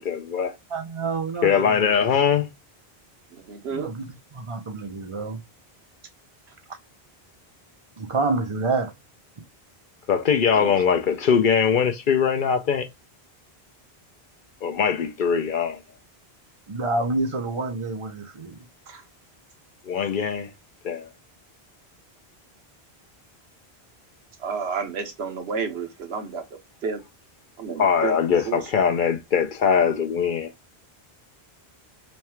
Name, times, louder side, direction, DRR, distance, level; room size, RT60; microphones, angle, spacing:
voice 1, 0.0-0.5 1.4-2.5 10.1-12.9 14.6-15.8 19.9-20.5 20.8-21.1 27.8-30.5, left 7 dB, 60° left, 0.7 m, -21 dB
voice 2, 0.7-1.9 3.7-4.1 4.3-5.4 6.7-6.8 8.0-8.9 16.7-18.6, right 3 dB, 35° right, 0.6 m, -28 dB
voice 3, 3.3-3.9 10.5-10.8 18.9-19.0 24.4-26.4 26.8-27.0 27.6-28.8, right 5 dB, 80° right, 1.1 m, -31 dB
3.2 x 2.3 x 4.2 m
omnidirectional pair, 1.1 m